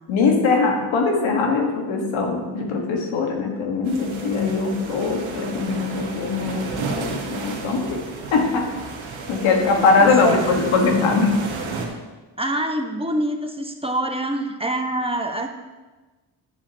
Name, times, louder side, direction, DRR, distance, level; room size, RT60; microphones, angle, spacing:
voice 1, 0.1-8.0 8.3-8.7 9.3-11.4, left 4 dB, 80° left, 2 dB, 1.7 m, -21 dB
sound 1, 3.8-11.9, right 4 dB, 80° right, 1.7 m, -32 dB
voice 2, 9.5-10.4 12.4-15.5, right 1 dB, 10° right, 3 dB, 1.3 m, -26 dB
10.5 x 9.8 x 2.9 m, 1.2 s
supercardioid pair, 50°, 46 cm